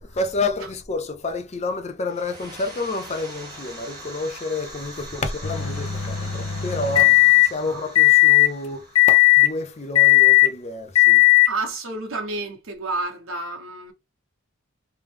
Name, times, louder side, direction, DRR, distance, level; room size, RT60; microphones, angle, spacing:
voice 1, 0.0-11.2, left 2 dB, 30° left, 0.6 m, -29 dB
sound 1, 2.0-10.6, right 1 dB, 20° right, 1.4 m, -42 dB
sound 2, 5.4-7.5 8.0-8.5 9.0-9.5 10.0-10.5 11.0-11.5, left 19 dB, 90° left, 0.6 m, -16 dB
voice 2, 11.5-13.9, right 3 dB, 65° right, 1.2 m, -30 dB
3.2 x 3.1 x 3.4 m
head